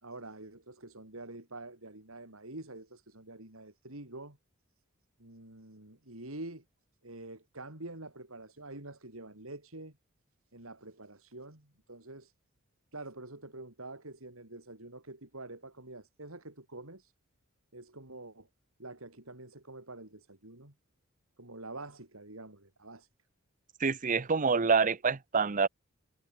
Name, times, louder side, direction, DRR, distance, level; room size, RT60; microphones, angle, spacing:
voice 1, 0.0-4.4 5.2-6.6 7.0-10.0 10.5-12.3 12.9-17.1 17.7-18.5 18.8-20.7 21.4-23.1, right 2 dB, 70° right, 4.5 m, -46 dB
voice 2, 23.8-25.7, right 5 dB, 40° right, 0.7 m, -27 dB
head